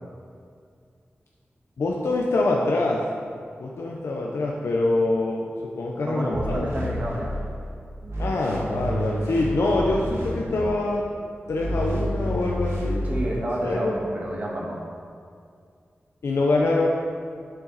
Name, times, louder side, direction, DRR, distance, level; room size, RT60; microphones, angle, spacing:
voice 1, 1.8-3.0 3.6-5.5 5.7-6.7 8.2-11.0 11.5-13.1 13.6-14.0 16.2-16.9, left 2 dB, 85° left, -2 dB, 0.7 m, -24 dB
voice 2, 6.0-7.4 13.0-14.8, right 1 dB, 35° right, -3 dB, 1.5 m, -29 dB
sound 1, 6.3-7.7 8.0-10.9 11.5-13.2, equal, 80° right, 2.1 m, -29 dB
8.8 x 6.7 x 4.1 m, 2.3 s
wide cardioid pair, 125°, 4 cm